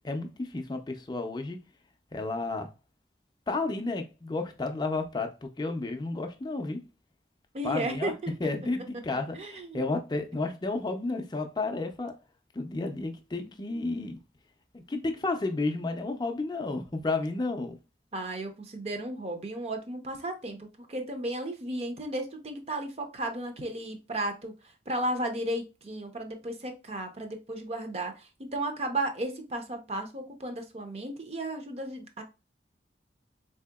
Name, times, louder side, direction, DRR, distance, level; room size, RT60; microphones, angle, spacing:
voice 1, 0.0-1.6 2.1-2.7 3.5-6.8 7.6-8.1 8.4-12.1 12.5-14.2 14.7-17.8, left 3 dB, 25° left, 0.4 m, -32 dB
voice 2, 7.5-8.3 9.3-9.9 18.1-24.5 24.9-28.1 28.4-32.2, right 1 dB, 35° right, 0.6 m, -34 dB
4.2 x 2.7 x 2.2 m
head